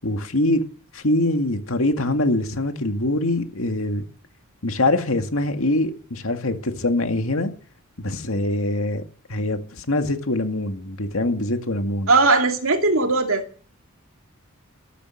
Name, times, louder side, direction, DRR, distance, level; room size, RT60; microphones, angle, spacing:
voice 1, 0.0-0.6 0.9-4.0 4.6-7.5 8.0-9.0 9.3-12.1, left 1 dB, 70° left, 2.1 m, -23 dB
voice 2, 12.1-13.4, right 3 dB, 70° right, 2.5 m, -18 dB
14.0 x 13.0 x 6.5 m
head